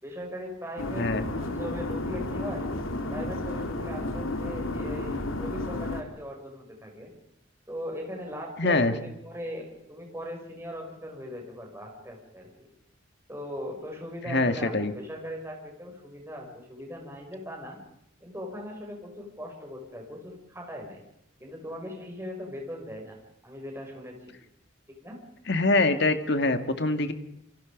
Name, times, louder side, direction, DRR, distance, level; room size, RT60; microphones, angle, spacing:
voice 1, 0.0-2.7 3.1-7.1 7.7-12.7 13.3-17.8 18.2-21.0 21.4-23.2 23.4-24.3 24.9-25.2, equal, 15° right, 1 dB, 6.7 m, -39 dB
sound 1, 0.8-6.0, left 2 dB, 85° left, 2.6 m, -32 dB
voice 2, 0.9-1.3 8.6-8.9 14.3-14.9 25.5-27.1, left 2 dB, 55° left, 8 dB, 2.1 m, -24 dB
28.0 x 24.5 x 5.3 m, 0.82 s
head